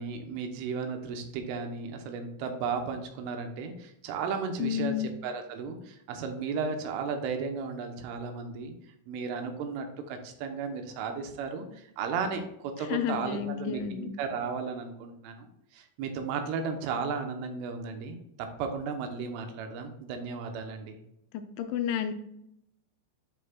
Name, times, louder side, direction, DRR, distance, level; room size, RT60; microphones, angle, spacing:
voice 1, 0.0-8.7 9.1-21.0, right 5 dB, 80° right, 5 dB, 3.3 m, -35 dB
voice 2, 4.6-5.1 12.9-14.1 21.3-22.1, left 9 dB, 85° left, 7 dB, 2.7 m, -31 dB
11.0 x 6.1 x 2.3 m, 0.79 s
omnidirectional pair, 5.9 m